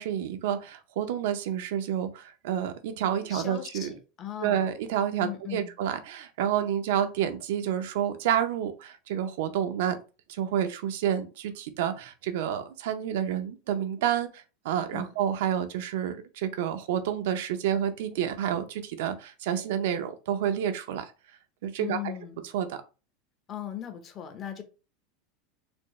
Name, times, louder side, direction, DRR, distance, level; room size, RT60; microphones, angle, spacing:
voice 1, 0.0-3.9 4.4-10.0 10.3-21.1 21.6-22.0 22.5-22.8, right 9 dB, 75° right, 0.5 m, -29 dB
voice 2, 3.3-4.7 5.2-5.7 14.9-15.2 21.8-22.4 23.5-24.6, left 11 dB, 35° left, 0.7 m, -38 dB
4.3 x 2.0 x 3.1 m
supercardioid pair, 130°, 0 cm